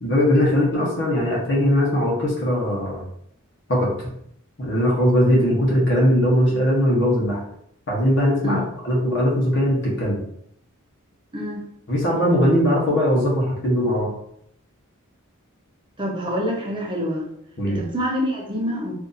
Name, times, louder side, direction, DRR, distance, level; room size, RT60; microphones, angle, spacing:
voice 1, 0.0-3.0 3.7-4.1 4.6-7.4 7.9-10.2 11.9-14.1 17.6-17.8, equal, 55° left, -4 dB, 1.1 m, -20 dB
voice 2, 11.3-11.6 16.0-17.3 17.7-18.9, equal, 25° right, -2 dB, 0.8 m, -26 dB
2.7 x 2.7 x 3.8 m, 0.71 s
head